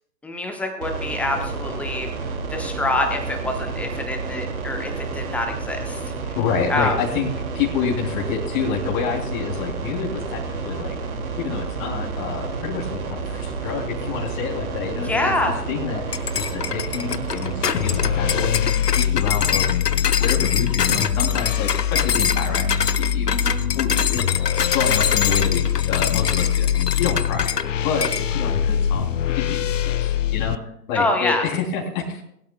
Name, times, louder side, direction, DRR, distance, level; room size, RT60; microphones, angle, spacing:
voice 1, 0.2-2.1 2.5-6.0 6.7-6.9 15.0-15.5 23.3-23.6 30.9-31.4, left 2 dB, 5° left, 4 dB, 1.0 m, -25 dB
sound 1, 0.8-18.5, right 4 dB, 60° right, 2.5 m, -30 dB
voice 2, 6.3-7.3 7.5-10.9 11.4-15.3 15.7-19.7 20.2-23.5 23.7-24.2 24.7-26.7 27.0-27.5 27.8-30.6 30.9-32.2, left 6 dB, 30° left, -1 dB, 3.2 m, -28 dB
sound 2, 16.1-27.7 28.0-28.3, left 7 dB, 75° left, 0.9 m, -25 dB
sound 3, 17.7-30.6, left 9 dB, 50° left, 0.7 m, -23 dB
20.5 x 12.0 x 2.3 m, 0.73 s
figure-of-eight pair, 125°, 49 cm